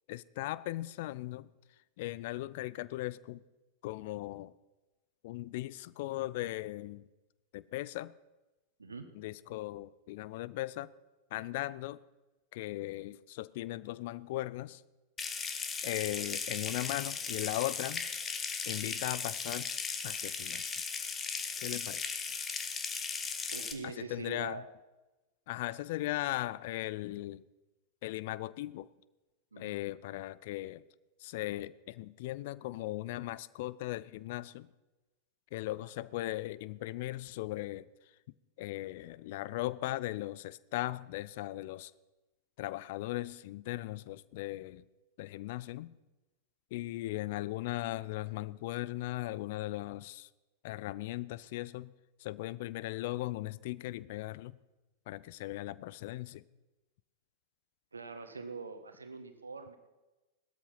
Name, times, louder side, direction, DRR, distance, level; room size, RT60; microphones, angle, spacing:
voice 1, 0.1-1.5 2.0-3.4 3.8-4.5 5.2-7.1 7.5-8.1 9.1-10.9 11.3-12.0 12.5-14.8 15.8-18.1 18.6-19.7 20.0-20.8 21.6-22.1 23.8-24.6 25.5-27.4 28.0-28.9 29.6-30.8 31.2-34.7 35.5-37.9 38.6-41.9 42.6-44.8 45.2-45.9 46.7-50.3 50.6-51.9 52.2-54.6 55.1-56.4, left 17 dB, 50° left, 0.5 m, -38 dB
Water tap faucet / Sink (filling or washing) / Trickle dribble, 15.2-23.7, left 5 dB, 20° left, 1.6 m, -37 dB
voice 2, 23.5-24.7 29.5-29.8 57.9-59.8, right 4 dB, 75° right, 1.5 m, -43 dB
18.0 x 13.0 x 5.8 m
figure-of-eight pair, 90°, 0 cm